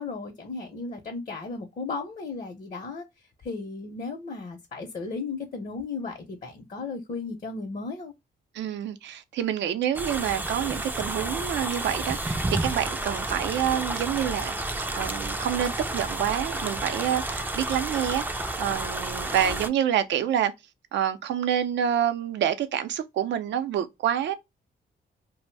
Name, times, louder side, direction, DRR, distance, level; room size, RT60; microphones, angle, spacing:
voice 1, 0.0-8.1 19.3-19.6, left 4 dB, 45° left, 0.6 m, -35 dB
voice 2, 8.5-14.5 14.9-20.5 20.9-24.3, right 10 dB, 85° right, 0.5 m, -27 dB
sound 1, 9.9-19.7, right 2 dB, 10° right, 0.3 m, -31 dB
2.6 x 2.0 x 3.1 m
cardioid pair, 95°, 18 cm